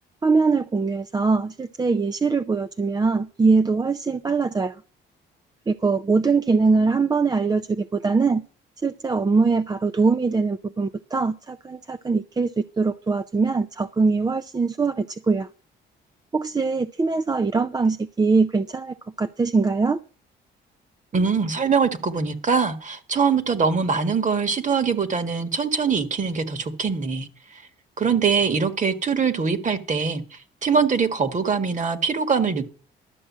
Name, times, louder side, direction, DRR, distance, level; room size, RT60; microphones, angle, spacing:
voice 1, 0.2-4.8 5.7-8.4 8.8-15.5 16.3-20.0, right 4 dB, 20° right, 0.5 m, -22 dB
voice 2, 21.1-27.3 28.0-30.2 30.6-32.7, right 5 dB, 40° right, 1.6 m, -23 dB
12.5 x 6.4 x 7.3 m
cardioid pair, 90°, 20 cm